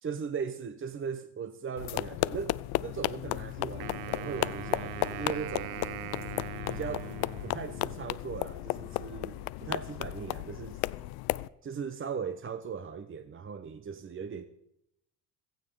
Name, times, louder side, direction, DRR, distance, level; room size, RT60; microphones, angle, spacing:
voice 1, 0.0-5.8 6.7-10.9 11.6-14.5, right 6 dB, 35° right, 1.0 m, -38 dB
sound 1, 1.8-11.5, left 20 dB, 80° left, 0.6 m, -34 dB
Wind instrument woodwind instrument, 3.8-8.1, right 18 dB, 80° right, 0.7 m, -41 dB
16.0 x 14.5 x 5.1 m
cardioid pair, 95°, 37 cm